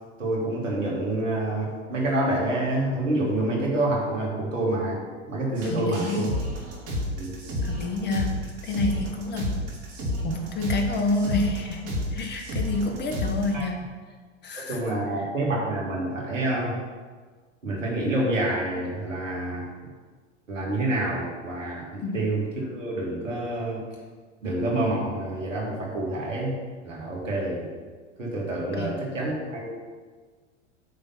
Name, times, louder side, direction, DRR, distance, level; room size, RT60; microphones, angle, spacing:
voice 1, 0.2-5.0 5.3-6.3 7.2-7.3 13.5-13.7 14.6-16.8 17.6-19.7 20.5-23.8 24.4-26.6 26.8-27.7 28.2-29.7, right 1 dB, 80° right, -3 dB, 2.3 m, -27 dB
sound 1, 5.5-13.5, left 1 dB, 40° right, 2.3 m, -31 dB
voice 2, 5.6-6.3 7.6-8.3 8.6-9.5 10.2-13.8 14.4-14.8 15.2-15.3 22.0-22.2 28.8-28.9, left 2 dB, 25° left, 4 dB, 1.2 m, -28 dB
8.8 x 3.6 x 5.7 m, 1.5 s
figure-of-eight pair, 90°, 38 cm